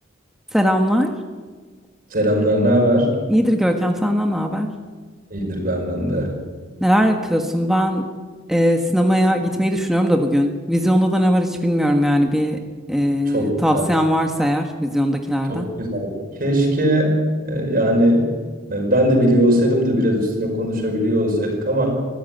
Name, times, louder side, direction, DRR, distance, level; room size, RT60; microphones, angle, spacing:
voice 1, 0.5-1.1 3.3-4.7 6.8-8.1 8.5-12.6 12.9-15.7, equal, ahead, 3 dB, 1.5 m, -19 dB
voice 2, 2.1-3.1 5.3-6.4 13.3-13.9 15.5-16.1 16.4-18.3 18.7-22.0, equal, 50° right, 1 dB, 5.3 m, -19 dB
23.0 x 15.5 x 9.2 m, 1.4 s
head